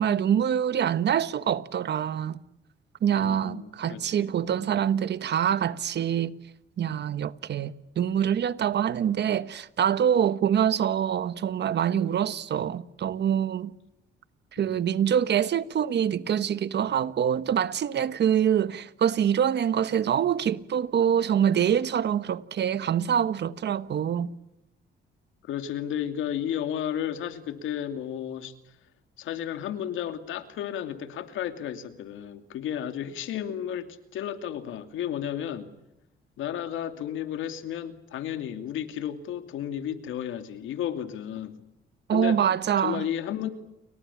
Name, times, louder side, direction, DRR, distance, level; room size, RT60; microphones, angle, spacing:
voice 1, 0.0-2.4 3.0-6.4 6.8-13.8 14.5-24.3 42.1-43.0, right 9 dB, 60° right, 1.3 m, -25 dB
voice 2, 3.1-4.3 4.5-4.7 14.6-14.8 25.4-28.5 29.2-35.7 36.4-41.6 42.1-42.4 42.8-43.5, left 10 dB, 85° left, 2.7 m, -33 dB
30.0 x 23.5 x 7.2 m
cardioid pair, 90°, 20 cm